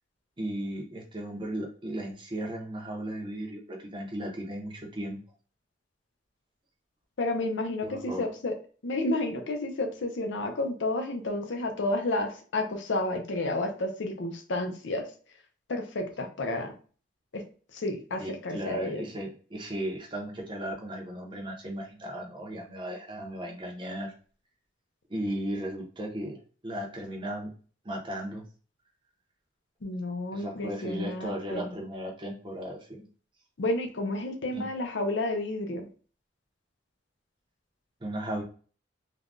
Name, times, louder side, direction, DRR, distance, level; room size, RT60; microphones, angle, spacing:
voice 1, 0.4-5.2 7.8-8.3 18.2-24.1 25.1-26.4 26.6-27.5 27.8-28.4 30.3-33.1 34.5-34.6 38.0-38.4, right 1 dB, 25° right, 0 dB, 0.7 m, -36 dB
voice 2, 7.2-8.5 8.8-15.1 15.7-16.7 17.3-17.4 17.7-19.0 29.8-31.7 33.6-35.9, left 2 dB, 80° left, 5 dB, 0.6 m, -31 dB
3.4 x 2.2 x 2.5 m, 0.40 s
head